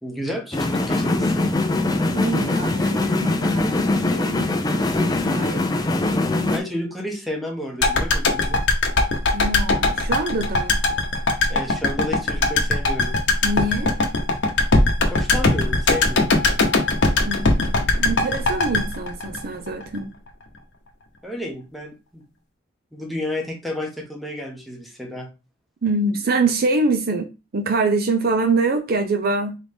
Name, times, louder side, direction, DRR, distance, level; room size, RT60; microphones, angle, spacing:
voice 1, 0.0-1.5 6.4-8.6 11.5-13.2 15.1-16.4 21.2-22.2 22.9-25.3, left 1 dB, ahead, 1.0 m, -31 dB
sound 1, 0.5-6.6, left 2 dB, 20° left, 0.5 m, -22 dB
voice 2, 2.1-5.6 9.3-10.8 13.4-13.9 17.3-20.1 25.8-27.3 27.5-29.6, right 3 dB, 50° right, 0.5 m, -25 dB
sound 2, 7.8-20.0 20.3-20.4, left 2 dB, 65° left, 0.9 m, -20 dB
4.0 x 3.1 x 3.4 m
head